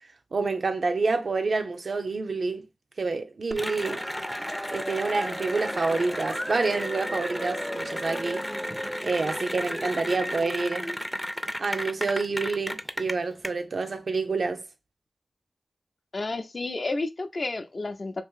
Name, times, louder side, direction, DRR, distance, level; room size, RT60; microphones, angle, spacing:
voice 1, 0.3-2.7 3.0-4.0 4.7-8.5 9.0-10.9 11.6-14.6, right 3 dB, 70° right, 0.5 m, -28 dB
Cheering / Applause, 3.5-13.5, equal, 5° left, 0.4 m, -32 dB
voice 2, 16.1-18.2, left 2 dB, 60° left, 0.5 m, -31 dB
2.8 x 2.5 x 3.7 m
cardioid pair, 50°, 0 cm